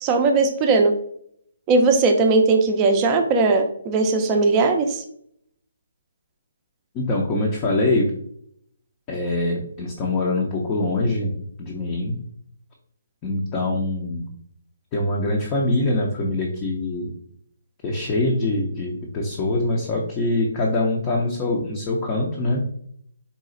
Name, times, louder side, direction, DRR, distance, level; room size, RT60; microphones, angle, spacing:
voice 1, 0.0-0.9 1.7-5.0, right 3 dB, 25° right, 4 dB, 0.5 m, -18 dB
voice 2, 6.9-8.1 9.1-11.3 11.6-12.2 13.2-14.2 14.9-17.1 17.8-22.6, left 2 dB, 25° left, -2 dB, 0.6 m, -23 dB
4.1 x 2.4 x 3.8 m, 0.66 s
hypercardioid pair, 150°, 0 cm